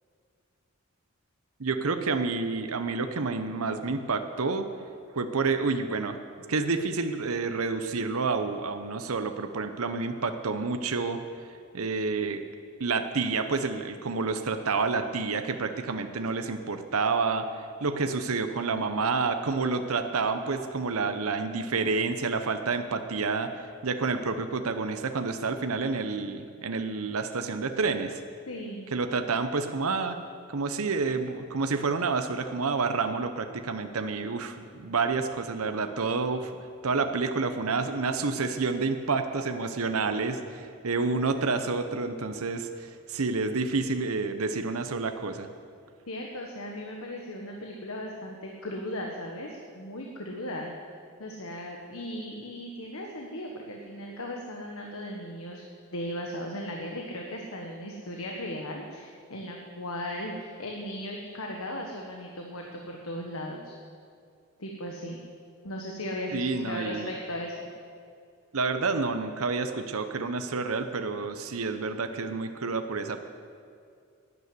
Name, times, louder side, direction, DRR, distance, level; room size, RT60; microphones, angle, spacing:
voice 1, 1.6-4.7 5.1-6.2 6.5-11.2 11.5-12.4 12.8-28.2 28.9-30.2 30.5-36.6 36.8-45.5 66.3-67.1 68.5-73.2, right 4 dB, 80° right, 8 dB, 0.8 m, -29 dB
voice 2, 28.5-28.9 46.1-50.7 51.2-55.6 55.9-63.7 64.6-65.2 65.6-67.7, left 1 dB, 75° left, 1 dB, 1.4 m, -37 dB
12.0 x 9.6 x 9.6 m, 2.3 s
head